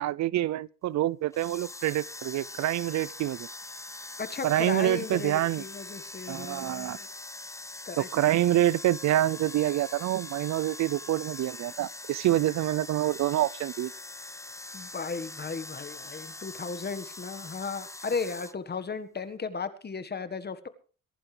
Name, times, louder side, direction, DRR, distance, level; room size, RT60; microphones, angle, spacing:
voice 1, 0.0-3.5 4.4-5.6 6.3-7.0 8.0-13.9, right 14 dB, 65° right, 0.6 m, -27 dB
sound 1, 1.3-18.5, left 2 dB, 10° left, 0.7 m, -43 dB
voice 2, 4.2-7.1 7.8-8.1 14.7-20.7, left 5 dB, 35° left, 1.6 m, -35 dB
23.0 x 11.0 x 3.4 m
cardioid pair, 90°, 30 cm